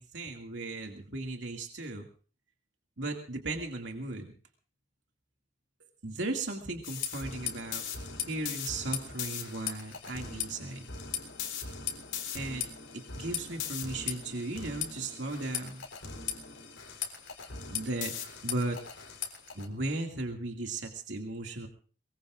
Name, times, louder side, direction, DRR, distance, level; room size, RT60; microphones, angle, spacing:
voice 1, 0.0-2.1 3.0-4.3 6.0-7.8 8.3-10.8 12.3-12.6 12.9-15.8 17.7-18.1 18.4-18.8 19.5-21.7, right 2 dB, 75° right, 2 dB, 2.4 m, -36 dB
sound 1, 6.8-19.7, left 7 dB, 85° left, 4.1 m, -38 dB
23.0 x 22.0 x 2.6 m, 0.40 s
head